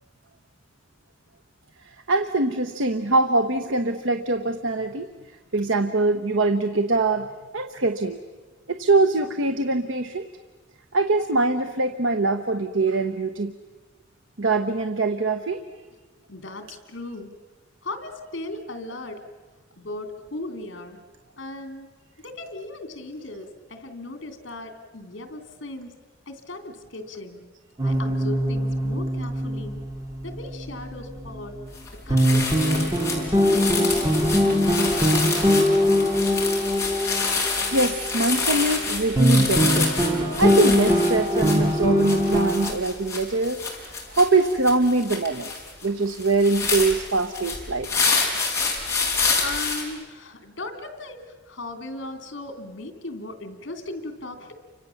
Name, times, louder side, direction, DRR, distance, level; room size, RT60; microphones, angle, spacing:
voice 1, 2.1-5.1 5.5-7.3 7.5-8.2 8.7-10.3 10.9-13.5 14.4-15.6 37.4-40.0 40.4-43.6 44.1-45.5 45.8-47.9, right 3 dB, 90° right, 8 dB, 1.1 m, -23 dB
voice 2, 16.3-17.3 17.8-19.2 19.8-21.0 21.4-21.9 22.2-25.9 26.3-27.4 27.8-29.8 30.2-31.6 32.0-33.0 33.4-34.9 49.4-54.5, left 2 dB, 70° left, 7 dB, 3.0 m, -37 dB
sound 1, 27.8-31.7 32.1-38.9 39.1-42.7, equal, 20° right, 2.3 m, -22 dB
sound 2, 31.7-31.9 32.2-49.8, left 4 dB, 15° left, 5.1 m, -28 dB
30.0 x 25.5 x 7.2 m, 1.3 s
head